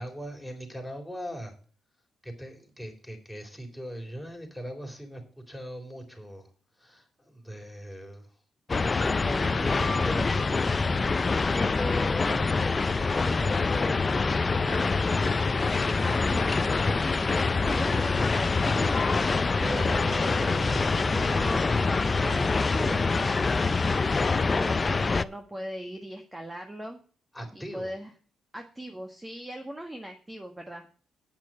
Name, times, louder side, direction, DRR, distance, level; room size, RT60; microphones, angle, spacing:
voice 1, 0.0-1.5 2.2-6.5 6.8-8.3 8.8-15.3 18.7-21.0 27.3-27.9, equal, 5° left, 1 dB, 3.9 m, -40 dB
sound 1, 8.7-25.2, left 4 dB, 35° left, 0.5 m, -25 dB
voice 2, 9.2-10.5 11.5-11.9 16.0-18.9 21.1-21.6 22.0-23.5 24.2-27.0 27.5-28.1 28.5-30.8, right 1 dB, 15° right, 4 dB, 1.4 m, -39 dB
sound 2, 19.6-25.1, right 4 dB, 50° right, 1.1 m, -43 dB
8.9 x 6.0 x 7.5 m, 0.41 s
supercardioid pair, 65°, 0 cm